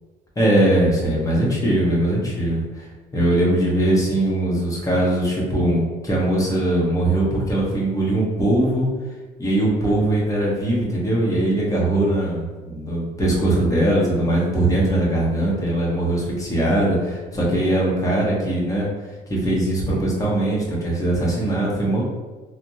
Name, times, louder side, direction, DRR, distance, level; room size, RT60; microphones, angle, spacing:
voice 1, 0.4-2.9 3.1-8.9 9.4-18.9 19.3-22.0, right 1 dB, 20° left, -4 dB, 0.9 m, -21 dB
3.4 x 2.1 x 2.7 m, 1.3 s
cardioid pair, 110°, 17 cm